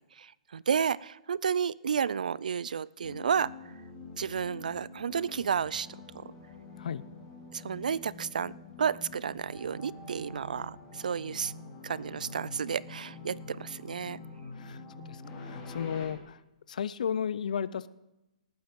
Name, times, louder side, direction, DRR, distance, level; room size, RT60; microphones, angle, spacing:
voice 1, 0.5-3.5 4.2-5.9 6.1-6.3 7.5-8.5 8.8-11.5 11.8-14.2, right 7 dB, 90° right, 22 dB, 0.4 m, -31 dB
sound 1, 3.0-16.1, left 3 dB, 20° left, 4.1 m, -46 dB
voice 2, 14.5-16.4 16.7-17.9, left 7 dB, 70° left, 18 dB, 0.6 m, -34 dB
18.5 x 9.2 x 5.3 m, 0.97 s
hypercardioid pair, 160°, 4 cm